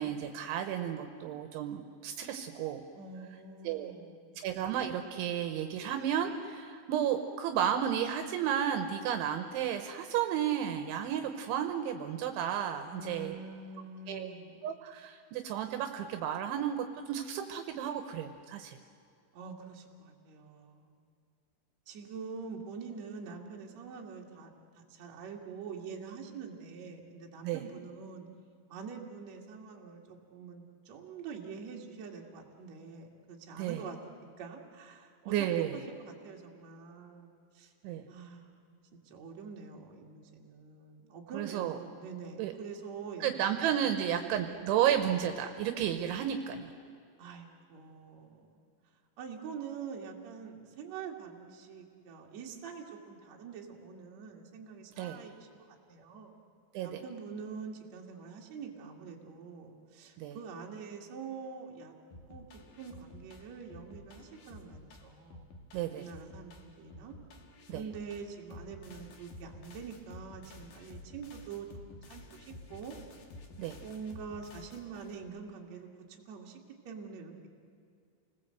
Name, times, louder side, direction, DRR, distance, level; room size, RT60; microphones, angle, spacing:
voice 1, 0.0-2.8 3.6-3.9 4.4-13.4 14.1-14.3 14.6-18.8 27.4-27.6 33.6-33.8 35.3-35.8 37.8-38.0 41.3-41.8 42.4-42.5 43.2-46.7 55.0-55.2 56.7-57.0 60.2-60.4 65.7-66.0 67.7-67.8 73.6-73.8, right 9 dB, 75° right, 7 dB, 3.2 m, -32 dB
voice 2, 2.9-4.6 12.9-14.6 19.3-20.9 21.9-28.3 28.7-34.0 34.4-37.7 38.1-38.7 39.0-43.6 44.1-44.4 47.2-48.5 49.2-56.3 56.8-61.9 62.3-62.4 62.8-65.4 66.0-67.2 67.7-71.7 71.9-73.0 73.8-76.6 76.8-77.5, right 5 dB, 45° right, 0 dB, 2.6 m, -45 dB
sound 1, 62.1-75.3, left 2 dB, 55° left, 2.9 m, -51 dB
29.5 x 20.0 x 7.9 m, 2.4 s
omnidirectional pair, 5.8 m